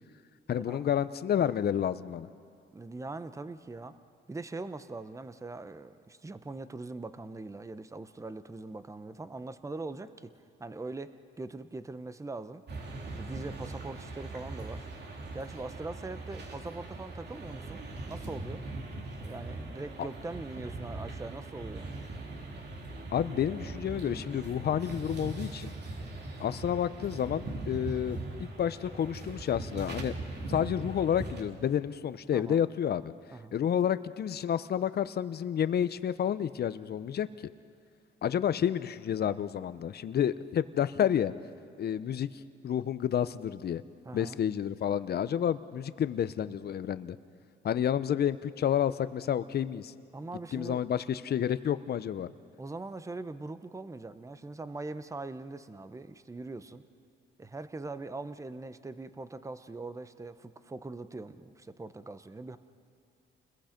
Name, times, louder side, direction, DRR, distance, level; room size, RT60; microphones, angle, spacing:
voice 1, 0.5-2.3 20.0-20.1 23.1-25.7 26.4-30.1 30.5-33.1 33.5-37.3 38.2-41.3 41.8-42.3 42.6-43.8 44.1-47.2 47.6-49.9 50.5-52.3, left 9 dB, 55° left, 14 dB, 0.8 m, -30 dB
voice 2, 2.7-4.0 4.3-10.3 10.6-12.6 13.0-14.9 15.3-18.6 19.2-22.0 32.3-32.6 33.3-33.6 44.0-44.4 50.1-50.8 52.6-56.8 57.4-62.6, right 3 dB, 15° right, 12 dB, 0.9 m, -42 dB
sound 1, 12.7-31.4, right 2 dB, 55° right, 3.1 m, -40 dB
29.5 x 21.0 x 5.2 m, 2.4 s
cardioid pair, 90°, 20 cm